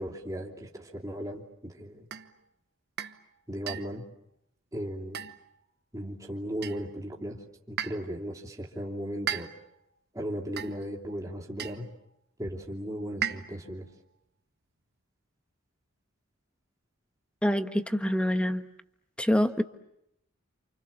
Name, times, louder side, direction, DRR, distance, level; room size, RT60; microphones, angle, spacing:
voice 1, 0.0-2.1 3.5-4.0 4.7-5.3 5.9-9.5 10.1-11.9 12.4-13.9, equal, 15° right, -2 dB, 3.1 m, -36 dB
sound 1, 2.1-2.3 3.0-3.2 3.7-4.0 5.1-5.6 6.6-7.0 7.8-8.2 9.3-9.8 10.6-11.0 11.6-11.9 13.2-13.7, right 8 dB, 50° right, 1.1 m, -36 dB
voice 2, 17.4-18.6 19.2-19.6, left 1 dB, 5° left, 9 dB, 1.2 m, -25 dB
29.0 x 28.0 x 7.3 m, 0.79 s
head